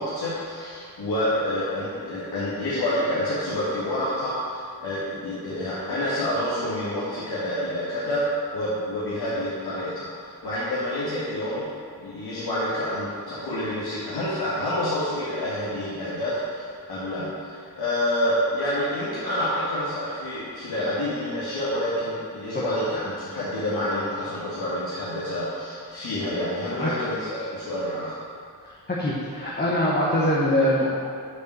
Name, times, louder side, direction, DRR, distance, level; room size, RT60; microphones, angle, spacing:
voice 1, 0.0-8.3 8.5-11.7 12.0-28.2, left 1 dB, 90° left, -10 dB, 1.8 m, -28 dB
voice 2, 28.9-30.9, left 1 dB, 25° left, -6 dB, 1.0 m, -23 dB
6.8 x 5.1 x 6.8 m, 2.3 s
wide cardioid pair, 170°, 37 cm